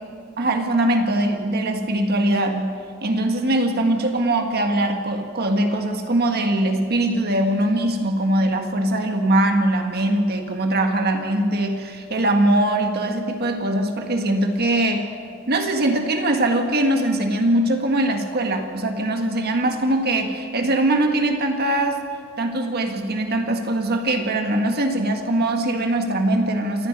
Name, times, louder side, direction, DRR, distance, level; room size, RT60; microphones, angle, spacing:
voice 1, 0.4-15.1 15.5-22.0 22.4-26.9, right 1 dB, 50° right, 4 dB, 1.8 m, -21 dB
28.0 x 11.0 x 9.6 m, 2.2 s
head